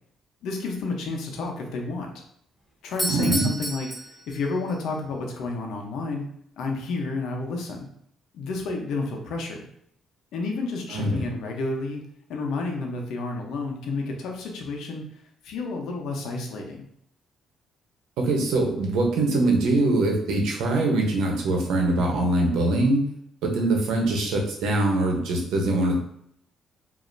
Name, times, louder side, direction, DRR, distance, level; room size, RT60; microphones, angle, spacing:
voice 1, 0.4-2.1 2.8-6.2 6.6-7.9 8.3-9.7 10.3-12.0 12.3-15.0 15.4-16.8, left 3 dB, 80° left, 1 dB, 0.9 m, -31 dB
Doorbell, 2.8-4.8, right 1 dB, ahead, 1.1 m, -31 dB
voice 2, 3.1-3.6 10.9-11.2 18.2-23.0 23.4-26.0, right 2 dB, 85° right, 1 dB, 1.0 m, -23 dB
5.1 x 2.8 x 2.7 m, 0.71 s
cardioid pair, 110°, 0 cm